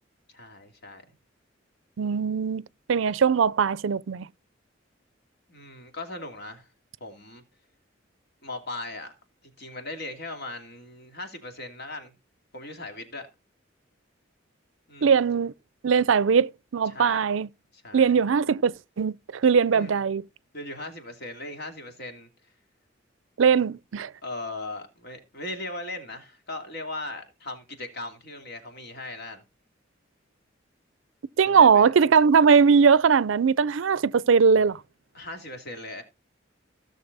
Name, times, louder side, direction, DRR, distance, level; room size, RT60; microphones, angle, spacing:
voice 1, 0.3-1.0 5.5-6.7 7.0-7.4 8.4-9.1 9.6-12.1 12.5-13.3 14.9-15.2 16.9-17.2 17.7-18.1 19.7-20.0 20.5-22.3 24.2-29.4 31.5-31.9 35.1-36.0, left 2 dB, 60° left, 2.7 m, -38 dB
voice 2, 2.0-4.3 15.0-15.5 15.8-17.5 17.9-20.2 23.4-24.1 31.4-34.8, right 6 dB, 85° right, 0.5 m, -20 dB
16.5 x 6.6 x 4.0 m
head